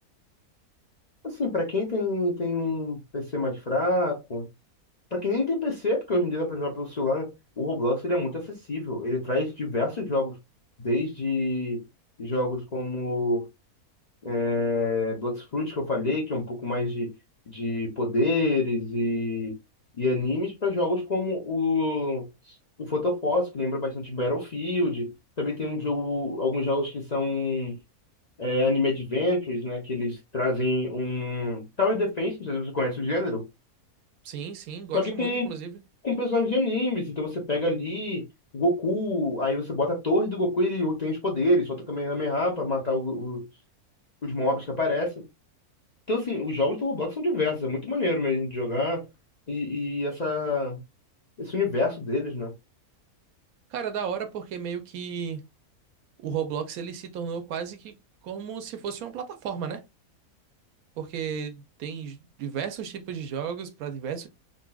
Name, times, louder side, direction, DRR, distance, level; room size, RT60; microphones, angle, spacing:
voice 1, 1.2-4.5 5.1-7.3 7.6-10.4 10.8-11.8 12.2-13.5 14.2-17.1 17.5-19.5 20.0-25.1 25.4-27.8 28.4-33.5 34.9-35.5 36.0-38.2 38.5-43.4 44.2-45.1 46.1-49.0 49.5-50.8 51.4-52.5, left 2 dB, 40° left, 0.6 m, -27 dB
voice 2, 34.2-35.8 53.7-55.4 56.2-58.0 58.2-59.8 61.0-64.3, right 7 dB, 75° right, 1.0 m, -34 dB
3.9 x 2.7 x 2.2 m
omnidirectional pair, 1.6 m